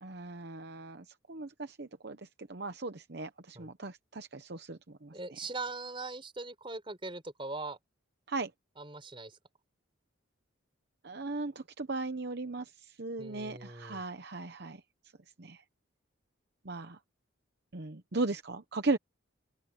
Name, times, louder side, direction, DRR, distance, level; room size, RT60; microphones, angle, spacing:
voice 1, 0.0-2.2 2.5-5.4 8.3-8.5 11.0-12.7 13.0-14.8 15.4-15.6 16.6-17.0 17.7-19.0, right 3 dB, 55° right, 0.9 m, -37 dB
voice 2, 5.1-7.8 8.8-9.4 13.2-14.0, right 3 dB, 25° right, 4.7 m, -41 dB
open air
head